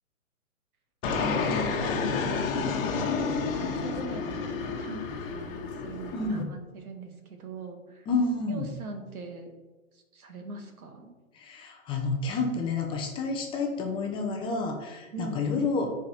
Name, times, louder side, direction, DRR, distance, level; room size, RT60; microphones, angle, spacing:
Fixed-wing aircraft airplane, 1.0-6.4, left 4 dB, 40° left, 1.4 m, -30 dB
voice 1, 1.2-2.8 3.5-8.1 8.5-9.5 9.9-11.1 15.1-15.7, right 3 dB, 85° right, 4 dB, 1.9 m, -42 dB
voice 2, 6.1-6.5 8.1-8.7 11.3-16.0, left 3 dB, 10° left, 2 dB, 0.7 m, -29 dB
9.1 x 4.9 x 4.4 m, 1.2 s
hypercardioid pair, 145°, 42 cm